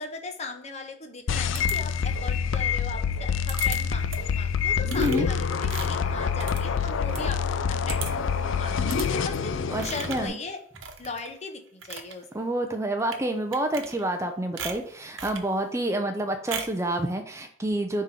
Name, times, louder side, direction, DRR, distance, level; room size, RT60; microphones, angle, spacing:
voice 1, 0.0-9.5 9.8-10.6 11.0-12.3, left 3 dB, 35° left, 5 dB, 0.9 m, -38 dB
sound 1, 1.3-10.3, left 6 dB, 80° left, 0.4 m, -26 dB
sound 2, 1.5-2.2 3.5-3.8 4.1-4.4 4.9-7.3 7.6-7.7 7.9-8.3 8.9-9.1 9.8-10.3 10.7-11.3 11.7-12.1 13.0-13.2 13.5-14.2 14.6-15.5 16.5-16.8, right 6 dB, 85° right, 0.9 m, -38 dB
voice 2, 9.7-10.4 12.3-18.0, right 1 dB, 15° right, 5 dB, 0.4 m, -28 dB
5.2 x 3.7 x 5.7 m, 0.64 s
head